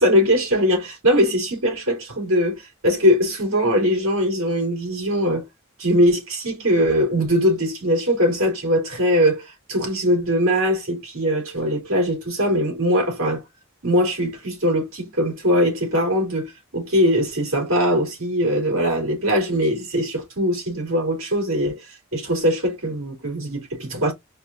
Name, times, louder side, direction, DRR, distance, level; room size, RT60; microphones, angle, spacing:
voice 1, 0.0-5.4 5.8-13.4 13.8-21.8 22.1-24.1, equal, 90° right, 3.1 m, -21 dB
4.7 x 2.5 x 3.9 m
head